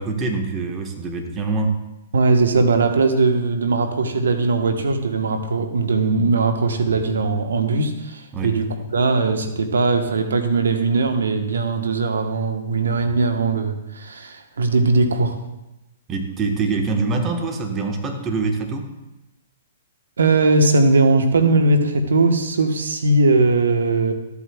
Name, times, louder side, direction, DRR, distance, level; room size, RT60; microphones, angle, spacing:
voice 1, 0.0-1.8 8.3-8.6 16.1-18.9, right 3 dB, 25° right, 3 dB, 1.2 m, -24 dB
voice 2, 2.1-15.4 20.2-24.1, right 3 dB, 80° right, 6 dB, 1.0 m, -19 dB
13.0 x 8.4 x 2.3 m, 0.96 s
hypercardioid pair, 125°, 0 cm